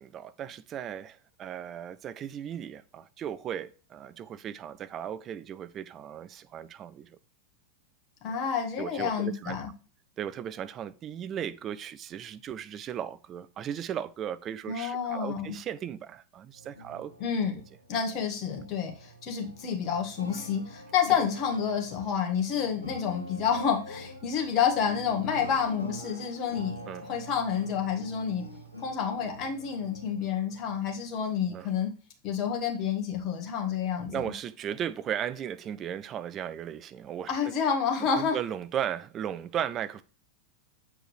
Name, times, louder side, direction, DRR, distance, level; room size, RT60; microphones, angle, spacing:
voice 1, 0.0-7.2 8.8-9.6 10.2-17.1 26.9-27.1 31.5-31.7 34.1-37.5 38.0-40.0, right 9 dB, 30° right, 0.5 m, -36 dB
voice 2, 8.2-9.7 14.7-15.6 17.2-17.6 17.9-28.4 28.8-31.9 32.2-34.3 37.3-38.4, left 7 dB, 35° left, 1.7 m, -29 dB
sound 1, 16.6-31.2, equal, 90° left, 1.6 m, -45 dB
7.9 x 4.4 x 3.1 m
figure-of-eight pair, 90°, 0 cm